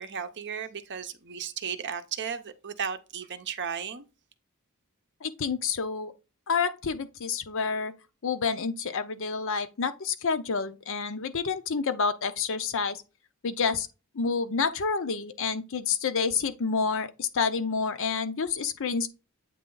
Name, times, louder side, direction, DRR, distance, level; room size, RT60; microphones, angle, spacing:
voice 1, 0.0-4.0, right 7 dB, 55° right, 0.7 m, -35 dB
voice 2, 5.2-6.1 6.5-7.9 8.2-13.0 13.4-13.9 14.1-19.1, left 5 dB, 65° left, 0.6 m, -28 dB
8.4 x 3.3 x 3.9 m
head